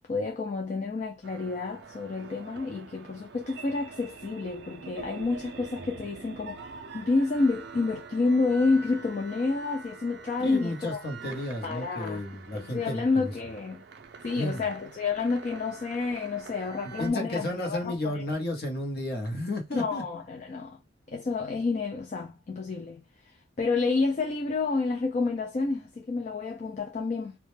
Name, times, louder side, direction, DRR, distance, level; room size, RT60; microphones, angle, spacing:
voice 1, 0.1-6.6 6.9-11.0 11.6-12.2 12.5-13.8 14.2-18.2 19.7-20.8 21.1-23.0 23.6-27.4, left 3 dB, 35° left, 0.3 m, -29 dB
sound 1, 1.2-17.1, right 4 dB, 55° right, 0.4 m, -45 dB
voice 2, 10.4-13.3 14.4-14.6 16.8-20.0, left 1 dB, 55° left, 0.8 m, -33 dB
2.2 x 2.1 x 3.0 m
head